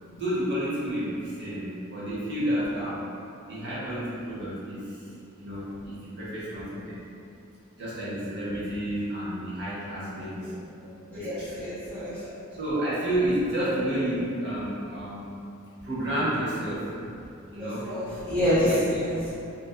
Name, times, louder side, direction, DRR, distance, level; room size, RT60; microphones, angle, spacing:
voice 1, 0.1-3.1 3.5-5.0 5.4-7.0 7.8-11.6 12.1-12.3 12.5-15.3 15.8-16.9 17.5-17.9 18.6-19.1, right 1 dB, 50° right, -9 dB, 0.8 m, -30 dB
voice 2, 11.1-12.2 17.6-19.3, equal, 5° left, -12 dB, 0.6 m, -27 dB
2.5 x 2.4 x 2.2 m, 2.6 s
head